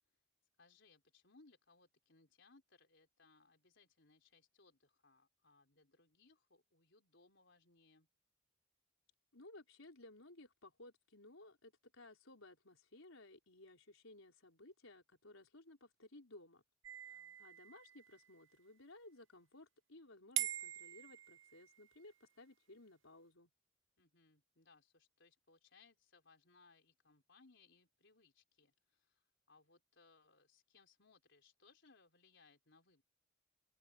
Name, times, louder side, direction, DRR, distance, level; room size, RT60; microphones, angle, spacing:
voice 1, 0.6-8.1 17.1-17.4 24.0-33.0, left 3 dB, 60° left, 4.7 m, -69 dB
voice 2, 9.3-16.6 17.0-23.5, left 2 dB, 80° left, 4.5 m, -59 dB
sound 1, 16.8-18.4 20.4-21.9, right 13 dB, 65° right, 0.8 m, -44 dB
open air
head